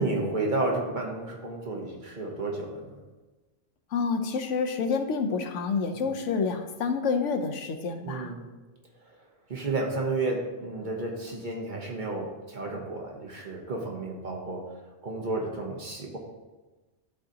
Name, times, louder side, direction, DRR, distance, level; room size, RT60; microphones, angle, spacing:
voice 1, 0.0-3.0 5.9-6.1 8.0-8.5 9.0-9.1 9.5-16.2, right 2 dB, 45° right, 0 dB, 1.0 m, -32 dB
voice 2, 3.9-8.4, left 5 dB, 85° left, 5 dB, 1.0 m, -28 dB
11.5 x 3.9 x 2.8 m, 1.2 s
omnidirectional pair, 1.2 m